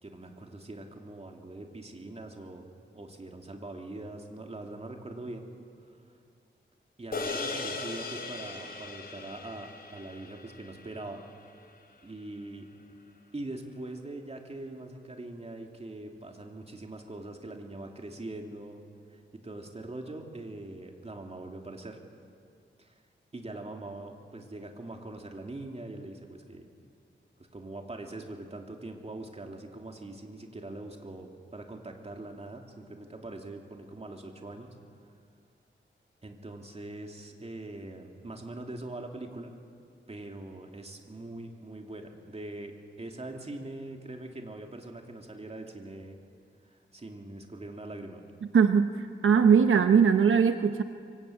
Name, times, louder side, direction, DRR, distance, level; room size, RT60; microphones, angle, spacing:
voice 1, 0.0-5.5 7.0-11.2 12.0-12.7 13.3-18.8 19.1-22.0 22.8-23.0 23.3-26.7 27.5-34.7 36.2-39.5 40.1-46.2 46.6-48.2 49.5-49.7, right 2 dB, 30° right, 2 dB, 3.0 m, -42 dB
sound 1, 7.1-11.7, left 3 dB, 50° left, 3.6 m, -38 dB
voice 2, 48.5-48.9 49.2-50.8, right 6 dB, 90° right, 7 dB, 1.0 m, -20 dB
24.5 x 24.0 x 8.8 m, 2.3 s
wide cardioid pair, 105°, 20 cm